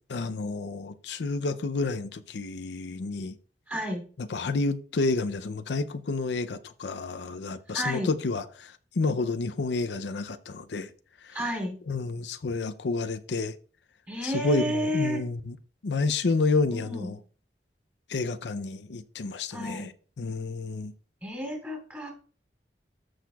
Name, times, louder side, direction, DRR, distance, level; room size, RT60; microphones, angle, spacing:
voice 1, 0.1-3.4 4.2-10.9 11.2-11.4 11.9-13.5 14.2-15.6 15.8-17.2 18.1-19.9 20.2-20.9, left 3 dB, 80° left, 0.5 m, -30 dB
voice 2, 3.7-4.0 7.7-8.1 11.3-11.7 14.1-15.2 16.7-17.1 19.5-19.9 21.2-22.1, equal, 10° right, 3.0 m, -31 dB
14.0 x 6.4 x 2.3 m
head